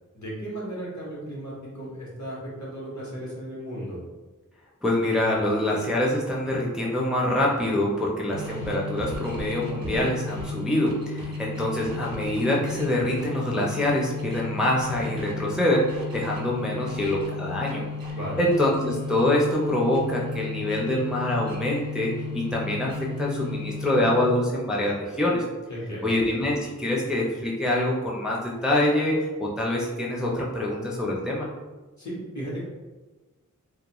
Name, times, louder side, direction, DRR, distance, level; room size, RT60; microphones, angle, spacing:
voice 1, 0.1-4.0 18.1-18.5 25.7-26.2 32.0-32.6, right 1 dB, 60° left, -6 dB, 1.0 m, -35 dB
voice 2, 4.8-17.8 18.4-22.9 23.2-25.4 26.0-31.5, left 1 dB, ahead, -3 dB, 0.4 m, -25 dB
sound 1, 8.3-24.5, left 3 dB, 90° right, 0.5 m, -34 dB
2.3 x 2.1 x 2.9 m, 1.2 s
wide cardioid pair, 45°, 33 cm